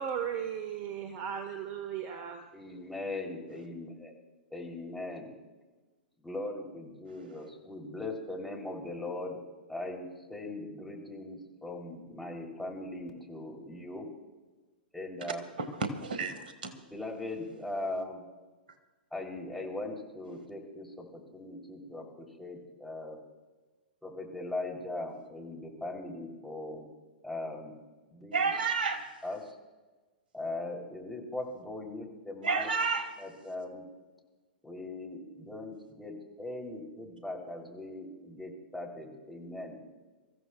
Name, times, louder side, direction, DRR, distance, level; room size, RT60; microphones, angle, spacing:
voice 1, 0.0-2.4, right 8 dB, 35° right, 8 dB, 1.1 m, -36 dB
voice 2, 2.5-4.1 4.5-5.4 6.2-14.1 14.9-15.4 16.9-18.3 19.1-23.2 24.0-26.9 27.2-27.7 28.1-28.5 29.2-29.6 30.3-32.7 33.2-33.9 34.6-39.8, left 2 dB, 5° left, -2 dB, 3.0 m, -40 dB
voice 3, 15.6-16.7 28.3-29.1 32.4-33.1, right 4 dB, 70° right, 8 dB, 1.5 m, -30 dB
27.5 x 15.0 x 2.3 m, 1.2 s
figure-of-eight pair, 105°, 5 cm